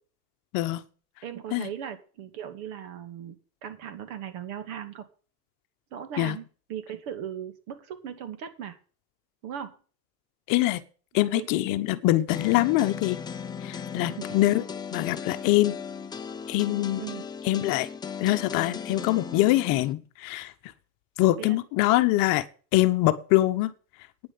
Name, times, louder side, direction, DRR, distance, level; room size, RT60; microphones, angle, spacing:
voice 1, 1.2-5.0 5.9-6.4 6.7-8.8 9.4-9.7 11.3-11.6 14.1-14.4 17.0-17.2 21.4-21.6, right 9 dB, 55° right, 2.6 m, -38 dB
voice 2, 10.5-10.8 11.1-13.2 13.6-14.6 14.9-15.8 16.5-17.0 17.4-17.9 18.2-20.5 21.2-22.4 22.7-23.7, left 16 dB, 45° left, 1.1 m, -24 dB
sound 1, 12.3-19.9, left 6 dB, 10° left, 0.6 m, -37 dB
9.8 x 7.3 x 8.3 m
supercardioid pair, 140°, 48 cm